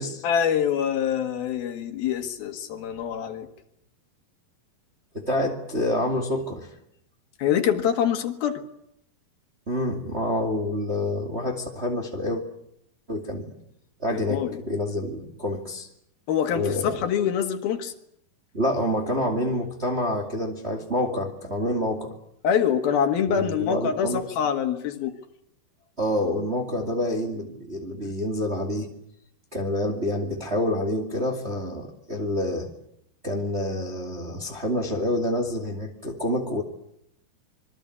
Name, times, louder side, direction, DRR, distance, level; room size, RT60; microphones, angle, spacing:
voice 1, 0.2-3.5 7.4-8.6 14.1-14.6 16.3-17.9 22.4-25.1, left 8 dB, 70° left, 7 dB, 3.5 m, -25 dB
voice 2, 5.1-6.7 9.7-12.4 13.1-13.4 14.0-15.9 16.5-17.0 18.5-22.1 23.4-24.2 26.0-28.9 29.5-32.7 33.2-36.6, left 1 dB, 20° right, 2 dB, 2.0 m, -27 dB
26.0 x 22.5 x 8.5 m, 0.75 s
omnidirectional pair, 4.5 m